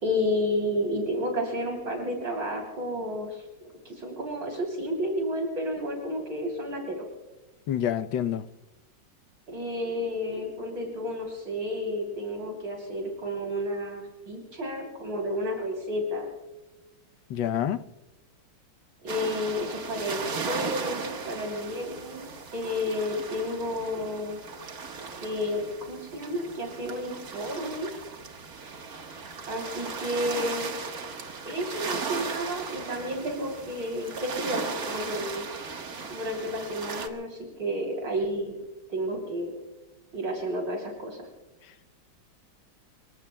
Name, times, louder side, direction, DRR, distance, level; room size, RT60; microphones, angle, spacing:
voice 1, 0.0-3.5 3.9-7.0 9.5-16.3 19.0-24.4 25.1-27.9 29.5-30.7 31.4-35.4 36.1-38.5 38.9-39.5 40.1-41.3, equal, 65° right, 3.8 m, -31 dB
voice 2, 7.7-8.5 17.3-17.8, left 10 dB, 75° left, 1.4 m, -27 dB
sound 1, 19.1-37.1, right 5 dB, 50° right, 1.8 m, -37 dB
27.0 x 23.5 x 2.2 m
omnidirectional pair, 2.2 m